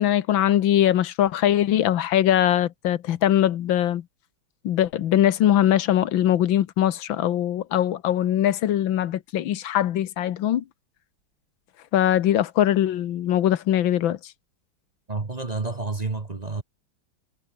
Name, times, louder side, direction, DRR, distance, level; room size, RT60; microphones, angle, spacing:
voice 1, 0.0-4.0 4.6-10.6 11.9-14.3, left 11 dB, 80° left, 1.7 m, -21 dB
voice 2, 15.1-16.6, right 3 dB, 25° right, 1.2 m, -29 dB
omnidirectional pair, 2.1 m